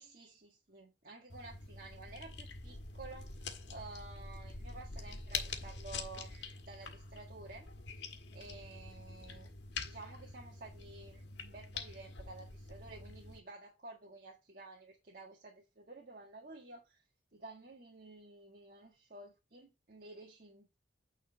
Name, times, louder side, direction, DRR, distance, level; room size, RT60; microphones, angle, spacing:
voice 1, 0.0-7.7 8.3-9.5 9.8-20.7, right 3 dB, 50° right, 1.7 m, -52 dB
sound 1, 1.3-13.4, left 4 dB, 85° left, 1.5 m, -45 dB
9.2 x 3.9 x 5.7 m
head